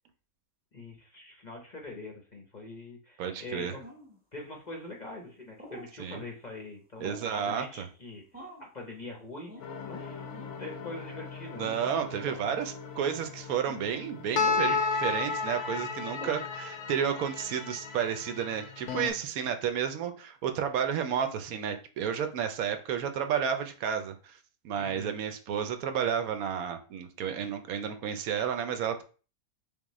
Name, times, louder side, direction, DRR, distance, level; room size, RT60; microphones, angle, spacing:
voice 1, 0.7-3.8 4.3-10.3 10.6-11.7 18.9-19.0 24.8-25.1, left 2 dB, 40° left, 0 dB, 0.7 m, -44 dB
voice 2, 3.2-3.8 6.0-6.2 7.0-7.9 11.5-24.4 24.6-29.0, right 8 dB, 80° right, 7 dB, 1.0 m, -31 dB
sound 1, 3.8-4.2 5.6-5.9 7.0-7.4 8.3-8.7 9.5-9.7 10.3-10.5 11.6-11.8 12.2-12.5 13.7-13.8 14.4-14.7 16.2-16.5, left 1 dB, 10° right, 0.7 m, -45 dB
sound 2, 9.6-19.1, left 4 dB, 85° left, 1.2 m, -34 dB
3.7 x 3.6 x 3.0 m, 0.36 s
omnidirectional pair, 1.5 m